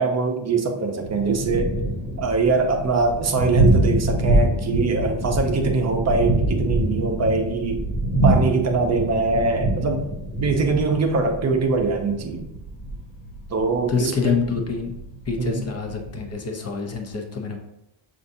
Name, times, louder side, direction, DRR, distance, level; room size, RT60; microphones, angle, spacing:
voice 1, 0.0-1.7 2.2-7.8 8.2-10.1 10.4-12.5 13.5-14.4 15.4-15.6, right 3 dB, 35° right, 4 dB, 0.6 m, -22 dB
Thunder, 1.0-16.3, right 1 dB, 80° left, 1.3 m, -25 dB
voice 2, 13.9-14.9 15.3-17.6, left 5 dB, 30° left, 3 dB, 0.7 m, -26 dB
6.7 x 2.6 x 2.7 m, 0.84 s
cardioid pair, 130°, 50 cm